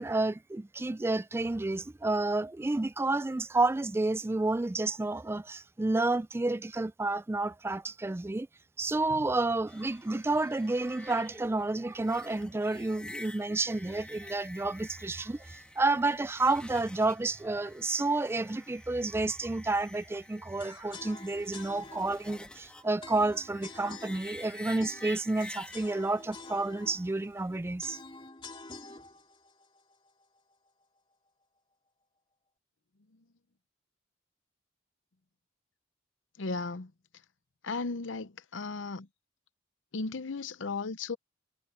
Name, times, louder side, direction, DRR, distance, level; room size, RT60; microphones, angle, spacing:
voice 1, 0.0-8.5 8.8-28.0, right 2 dB, 15° right, 0.3 m, -30 dB
sound 1, 9.7-27.5, left 1 dB, 5° left, 1.5 m, -50 dB
sound 2, 20.6-30.7, left 3 dB, 25° left, 2.8 m, -49 dB
voice 2, 36.4-36.9 37.6-39.1 39.9-41.2, left 3 dB, 75° left, 0.8 m, -35 dB
head